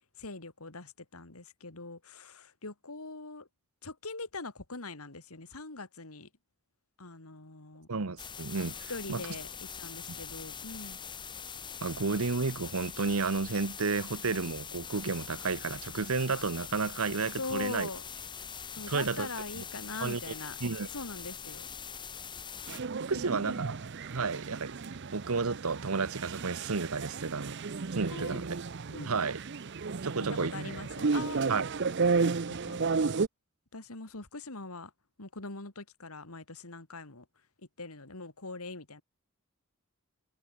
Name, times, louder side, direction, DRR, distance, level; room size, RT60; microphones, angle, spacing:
voice 1, 0.2-3.5 3.8-6.3 7.0-7.9 8.9-9.5 9.8-11.0 17.4-18.0 18.8-20.6 20.9-21.7 23.2-23.6 28.1-28.4 28.9-29.3 30.3-31.5 32.6-32.8 33.7-34.9 35.2-37.2 37.8-39.0, left 3 dB, 80° left, 2.8 m, -42 dB
voice 2, 7.9-9.2 11.8-17.9 18.9-19.3 19.6-19.7 20.0-20.2 20.6-20.9 23.0-23.8 24.1-24.8 25.1-27.6 27.9-28.6 29.0-29.4 30.0-30.5 31.5-31.7, right 4 dB, 75° right, 1.0 m, -32 dB
sound 1, 8.2-22.8, left 7 dB, 20° left, 1.2 m, -43 dB
sound 2, 22.7-33.3, right 4 dB, 50° right, 0.6 m, -33 dB
head